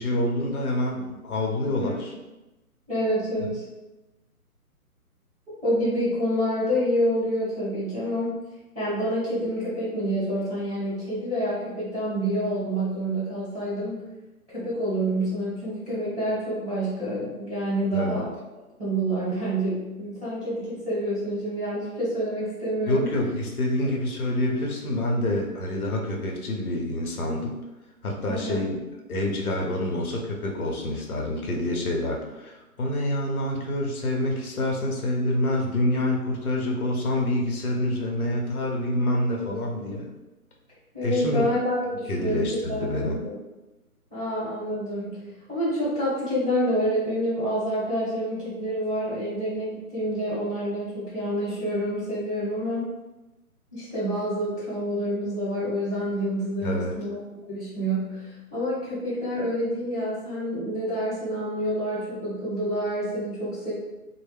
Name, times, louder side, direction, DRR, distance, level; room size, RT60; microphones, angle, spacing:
voice 1, 0.0-2.1 17.9-18.2 22.9-27.6 28.0-28.8 29.1-40.1 41.0-41.6 42.1-43.2 56.6-56.9, left 1 dB, 75° left, 0 dB, 0.8 m, -27 dB
voice 2, 2.9-3.6 5.5-8.4 8.7-14.0 14.5-18.3 18.8-23.1 28.2-28.6 39.5-39.6 40.9-43.4 44.1-45.2 45.5-52.9 53.7-57.2 57.5-63.7, equal, 5° right, -24 dB, 0.6 m, -28 dB
2.2 x 2.0 x 3.3 m, 1.0 s
hypercardioid pair, 160°, 44 cm